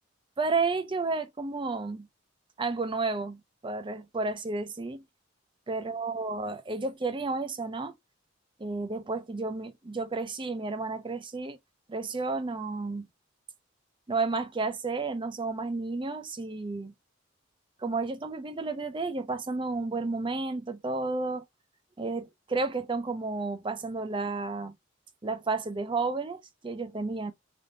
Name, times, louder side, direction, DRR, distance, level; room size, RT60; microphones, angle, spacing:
voice 1, 0.4-2.1 2.6-5.0 5.7-7.9 8.6-11.6 11.9-13.1 14.1-16.9 17.8-21.4 22.0-24.7 25.2-27.3, right 3 dB, 25° right, 0.5 m, -32 dB
3.4 x 2.7 x 2.6 m
head